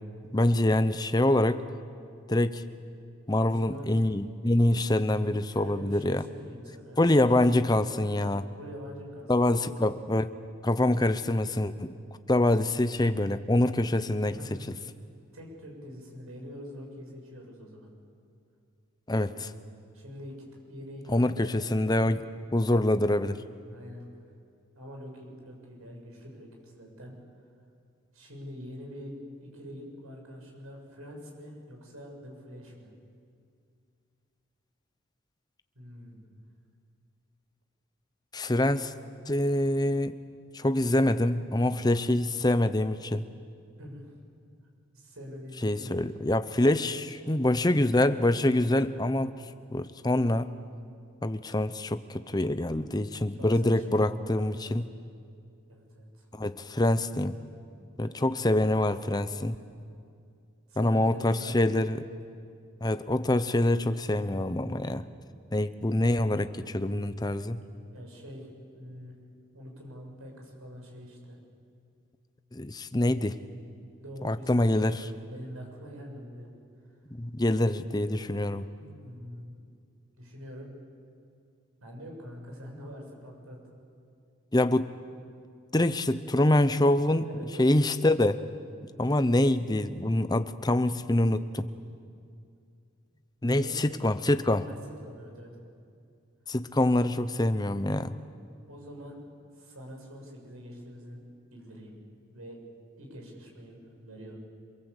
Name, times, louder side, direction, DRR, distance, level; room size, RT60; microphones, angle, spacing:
voice 1, 0.3-1.6 2.3-2.6 3.3-6.2 7.0-8.5 9.3-10.3 10.6-12.0 12.3-14.4 19.1-19.5 21.1-22.2 22.5-23.4 38.3-38.9 39.3-40.1 40.5-43.2 45.6-49.4 49.7-50.5 51.2-54.8 56.3-57.3 58.0-59.6 60.8-62.0 62.8-65.1 65.5-67.6 72.5-73.4 74.2-75.0 77.1-78.7 84.5-84.9 85.7-87.3 87.6-88.4 89.0-91.7 93.4-94.7 96.5-98.2, left 1 dB, 20° left, 11 dB, 0.7 m, -25 dB
voice 2, 3.4-4.0 5.5-7.0 8.6-9.6 14.3-14.7 15.3-17.9 19.9-20.4 20.7-22.2 23.7-24.0 24.8-27.1 28.1-32.9 35.7-36.3 43.8-44.1 44.9-45.9 53.4-54.8 55.7-56.3 58.0-58.5 60.7-61.8 67.6-69.2 69.5-71.4 74.0-75.0 75.3-76.5 78.8-79.6 80.1-80.7 81.8-83.6 87.3-87.7 93.6-94.0 94.6-94.8 95.0-95.6 98.7-99.2 99.5-101.2 101.5-102.0 102.3-102.6 103.0-104.4, equal, 85° right, 1 dB, 6.9 m, -45 dB
27.5 x 23.0 x 8.2 m, 2.4 s
head